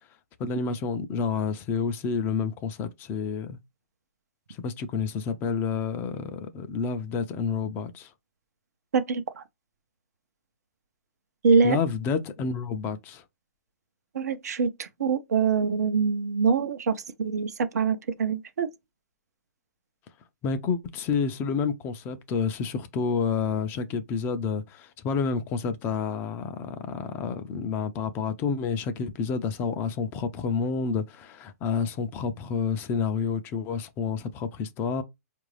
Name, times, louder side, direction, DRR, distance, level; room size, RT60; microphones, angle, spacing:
voice 1, 0.4-3.6 4.5-8.1 11.6-13.2 20.4-35.0, left 5 dB, 25° left, 0.5 m, -29 dB
voice 2, 8.9-9.4 11.4-11.8 14.1-18.7, right 5 dB, 75° right, 0.6 m, -24 dB
4.5 x 2.5 x 3.2 m
hypercardioid pair, 140°, 9 cm